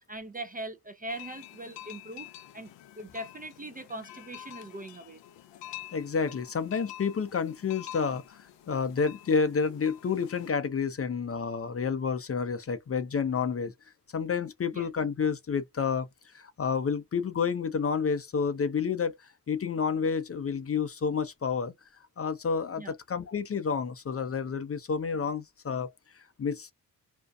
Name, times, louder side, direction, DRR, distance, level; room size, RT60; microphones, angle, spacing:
voice 1, 0.1-2.3 2.5-2.7 3.0-5.2 14.7-14.9 22.8-22.9, right 1 dB, 20° right, 0.5 m, -40 dB
sound 1, 1.1-10.5, left 13 dB, 80° left, 0.6 m, -48 dB
voice 2, 5.9-13.7 14.1-21.7 22.2-26.7, left 6 dB, 35° left, 0.6 m, -30 dB
2.5 x 2.2 x 2.3 m
supercardioid pair, 50°, 43 cm